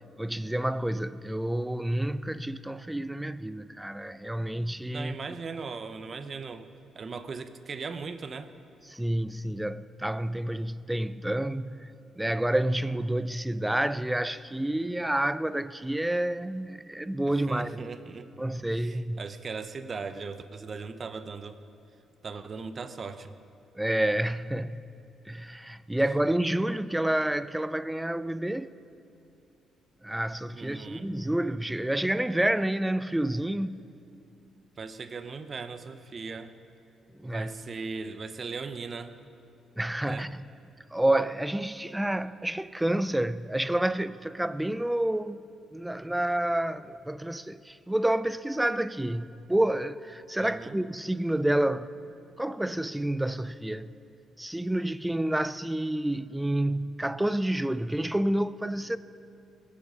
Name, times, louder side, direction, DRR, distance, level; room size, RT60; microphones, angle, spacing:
voice 1, 0.2-5.1 8.9-11.9 12.2-17.8 18.4-19.2 23.8-24.9 25.3-28.7 30.0-33.8 37.2-37.5 39.8-40.3 40.9-45.4 45.7-51.9 52.4-53.9 54.4-59.0, right 1 dB, 5° right, 0.4 m, -29 dB
voice 2, 4.9-6.7 6.9-8.5 17.2-18.5 18.7-21.6 22.2-23.3 30.5-31.1 34.8-36.5 37.2-39.2 40.0-40.3 50.4-50.8, right 4 dB, 40° right, 0.8 m, -38 dB
20.0 x 8.5 x 5.6 m
cardioid pair, 90°, 0 cm